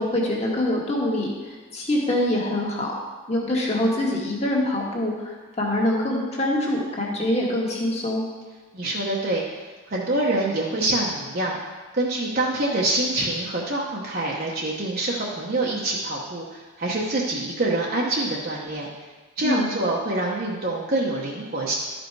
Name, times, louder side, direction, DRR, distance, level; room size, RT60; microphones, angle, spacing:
voice 1, 0.0-2.9 3.3-8.2 19.4-19.7, left 1 dB, 30° left, -3 dB, 1.6 m, -24 dB
voice 2, 8.7-9.4 9.9-11.6 11.9-18.9 19.4-21.7, right 2 dB, 45° right, -4 dB, 0.9 m, -25 dB
12.0 x 5.2 x 4.6 m, 1.3 s
head